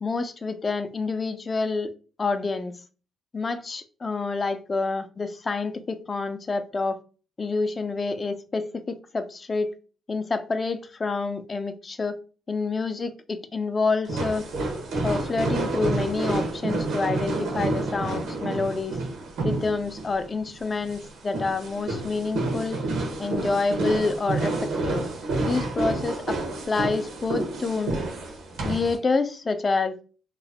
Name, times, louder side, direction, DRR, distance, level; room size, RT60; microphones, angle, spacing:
voice 1, 0.0-1.9 2.2-2.7 3.3-7.0 7.4-9.7 10.1-12.2 12.5-14.5 15.0-19.0 19.4-22.8 23.2-25.0 25.4-26.4 26.7-27.9 28.6-30.0, left 3 dB, 30° left, 0.4 m, -28 dB
sound 1, 14.1-29.0, right 2 dB, 80° right, 1.2 m, -29 dB
3.0 x 2.1 x 4.0 m
cardioid pair, 90°, 0 cm